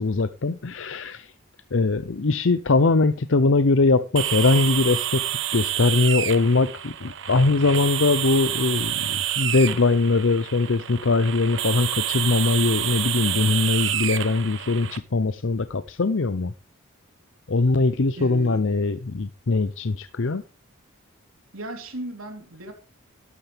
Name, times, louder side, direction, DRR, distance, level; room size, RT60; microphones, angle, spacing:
voice 1, 0.0-1.3 1.7-5.2 5.5-16.5 17.5-20.4, left 3 dB, 65° left, 0.6 m, -21 dB
sound 1, 4.2-15.0, right 12 dB, 60° right, 0.9 m, -28 dB
voice 2, 18.2-18.6 21.5-22.7, right 1 dB, 80° right, 3.5 m, -36 dB
12.5 x 11.5 x 3.4 m
head